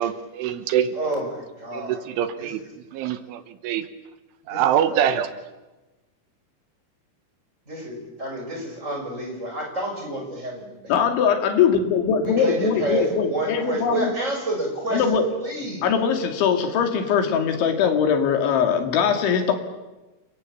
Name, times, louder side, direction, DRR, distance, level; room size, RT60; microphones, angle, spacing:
voice 1, 0.0-0.9 1.7-2.6 2.9-3.9 4.5-5.3, right 10 dB, 80° right, 11 dB, 3.6 m, -24 dB
voice 2, 0.9-2.0 2.4-2.7 4.5-4.6 4.9-5.1 7.7-10.9 12.2-15.9, right 1 dB, 15° right, 2 dB, 6.2 m, -29 dB
voice 3, 10.9-14.1 14.9-15.3 15.8-19.5, left 7 dB, 70° left, 5 dB, 4.6 m, -21 dB
30.0 x 22.5 x 8.6 m, 1.1 s
omnidirectional pair, 5.7 m